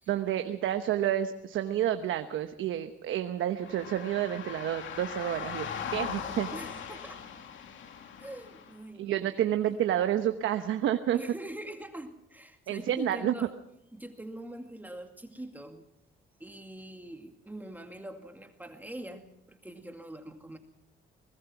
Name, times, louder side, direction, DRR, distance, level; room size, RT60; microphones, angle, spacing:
voice 1, 0.1-6.5 9.0-11.2 12.7-13.3, right 11 dB, 80° right, 8 dB, 1.1 m, -29 dB
sound 1, 3.6-8.8, left 7 dB, 75° left, 2.6 m, -39 dB
voice 2, 6.5-7.2 8.2-9.3 11.1-13.6 13.9-15.9 16.4-20.6, right 1 dB, 10° right, 5 dB, 2.2 m, -43 dB
22.5 x 20.5 x 6.0 m, 0.79 s
cardioid pair, 90°, 20 cm